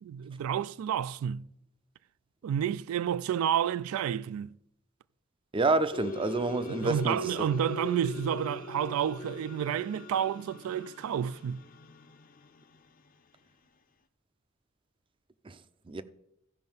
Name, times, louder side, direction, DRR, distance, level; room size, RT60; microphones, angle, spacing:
voice 1, 0.0-1.5 2.4-4.5 6.8-11.6, right 9 dB, 90° right, 0.3 m, -30 dB
voice 2, 5.5-7.3 15.4-15.6 15.9-16.0, right 3 dB, 25° right, 0.4 m, -28 dB
sound 1, 5.9-13.1, left 4 dB, 40° left, 0.5 m, -42 dB
14.5 x 5.3 x 5.4 m
head